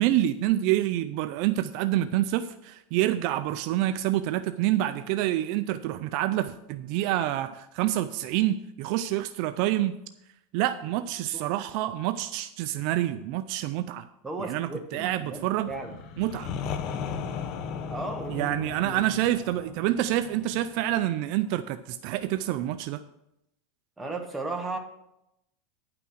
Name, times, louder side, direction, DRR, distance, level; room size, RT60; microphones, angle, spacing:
voice 1, 0.0-10.0 10.5-14.1 14.4-15.7 16.2-16.5 18.3-23.0, right 13 dB, 55° right, 11 dB, 0.4 m, -27 dB
voice 2, 14.2-16.0 17.9-18.5 18.8-19.0 24.0-24.8, right 2 dB, 10° right, 2 dB, 1.3 m, -35 dB
sound 1, 15.7-21.4, left 6 dB, 45° left, 0.8 m, -36 dB
9.7 x 5.9 x 6.3 m, 0.83 s
supercardioid pair, 145°, 0 cm